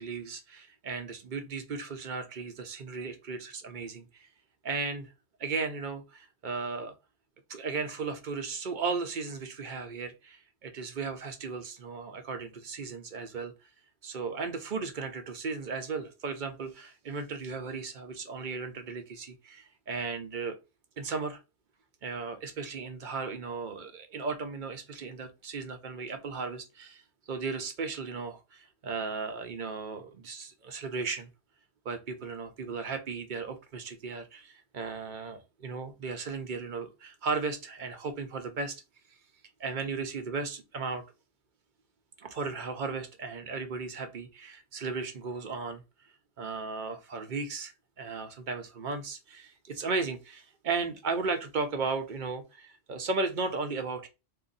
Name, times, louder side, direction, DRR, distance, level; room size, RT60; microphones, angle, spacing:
voice 1, 0.0-4.3 4.6-5.1 5.4-6.9 7.5-13.5 14.0-20.6 21.0-21.4 22.0-27.0 27.3-31.3 31.8-38.8 39.6-41.0 42.2-45.8 46.4-54.1, right 4 dB, 55° right, 0.7 m, -35 dB
2.7 x 2.6 x 3.8 m
omnidirectional pair, 1.1 m